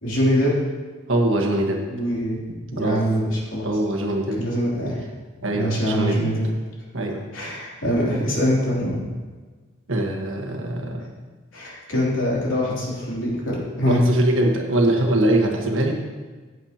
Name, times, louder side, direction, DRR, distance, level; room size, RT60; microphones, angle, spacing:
voice 1, 0.0-0.6 1.9-2.4 2.7-3.6 4.4-5.0 5.5-6.5 7.3-9.0 11.5-14.0, equal, 80° left, -5 dB, 3.0 m, -23 dB
voice 2, 1.1-1.8 2.8-3.0 3.6-4.4 5.4-6.3 6.9-7.2 9.9-11.1 13.8-15.9, right 1 dB, 85° right, 2 dB, 1.5 m, -22 dB
15.0 x 8.1 x 2.9 m, 1.4 s
head